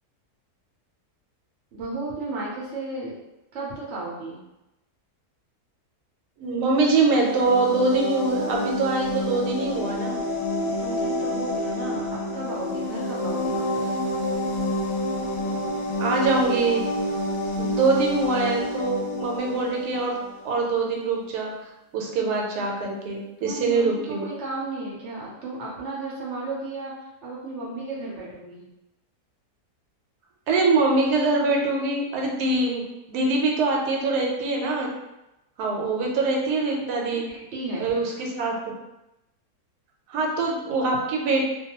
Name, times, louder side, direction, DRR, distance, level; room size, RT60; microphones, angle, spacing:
voice 1, 1.7-3.2 3.5-4.4 10.6-13.9 23.4-28.7 36.9-37.9, right 2 dB, 60° right, -5 dB, 0.8 m, -34 dB
voice 2, 6.4-10.2 16.0-16.9 17.6-20.2 20.4-21.5 21.9-24.3 30.5-34.9 35.6-37.3 37.8-38.7 40.1-41.5, right 3 dB, 85° right, -1 dB, 1.2 m, -24 dB
sound 1, 6.8-20.4, left 1 dB, 70° left, 0.9 m, -28 dB
2.5 x 2.2 x 2.8 m, 0.94 s
omnidirectional pair, 1.7 m